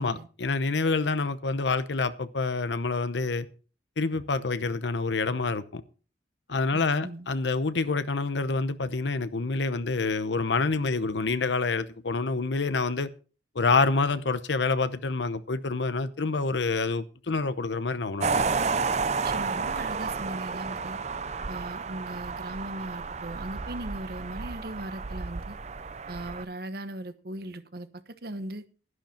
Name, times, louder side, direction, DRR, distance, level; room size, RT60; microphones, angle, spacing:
voice 1, 0.0-3.5 4.0-5.8 6.5-13.1 13.5-18.4, left 3 dB, 85° left, 0.8 m, -27 dB
voice 2, 6.7-7.3 19.2-21.0 21.5-25.6 26.1-28.6, right 1 dB, 55° right, 1.1 m, -38 dB
sound 1, 18.2-26.4, right 4 dB, 40° right, 0.6 m, -31 dB
12.0 x 11.0 x 4.3 m
head